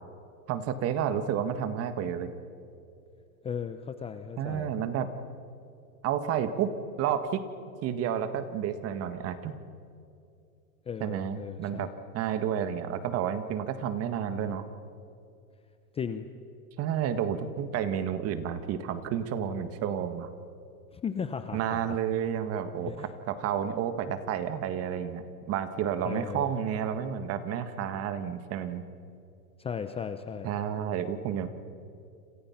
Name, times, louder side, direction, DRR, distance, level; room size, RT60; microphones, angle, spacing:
voice 1, 0.5-2.3 4.4-5.1 6.0-6.7 7.0-7.5 7.8-9.5 11.0-11.9 12.1-14.7 16.8-20.3 21.5-25.2 25.5-28.8 30.4-31.5, right 9 dB, 30° right, 10 dB, 1.7 m, -30 dB
voice 2, 3.4-4.7 10.9-11.9 15.9-16.3 20.9-22.0 22.9-23.1 26.0-26.5 29.6-30.5, left 7 dB, 15° left, 9 dB, 0.7 m, -36 dB
29.5 x 27.0 x 5.9 m, 2.6 s
supercardioid pair, 140°, 45 cm